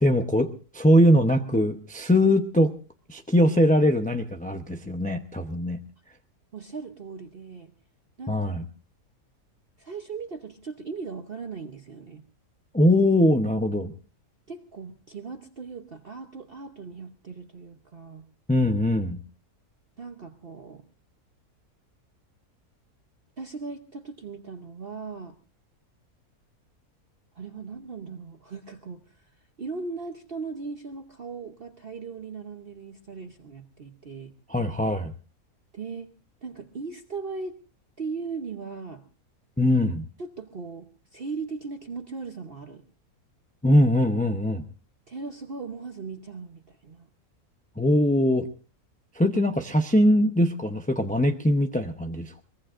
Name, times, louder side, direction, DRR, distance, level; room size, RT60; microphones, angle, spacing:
voice 1, 0.0-2.8 3.1-5.8 8.3-8.6 12.7-13.9 18.5-19.2 34.5-35.1 39.6-40.0 43.6-44.6 47.8-48.5 49.2-52.4, left 1 dB, 10° left, 5 dB, 0.4 m, -21 dB
voice 2, 6.5-7.7 8.2-8.4 9.8-12.3 14.5-18.2 20.0-20.8 23.4-25.3 27.4-29.2 29.6-34.3 35.7-36.1 36.4-37.5 38.0-39.0 40.2-42.8 45.1-47.1, right 4 dB, 45° right, 6 dB, 1.1 m, -38 dB
23.0 x 20.5 x 2.5 m, 0.36 s
omnidirectional pair, 1.6 m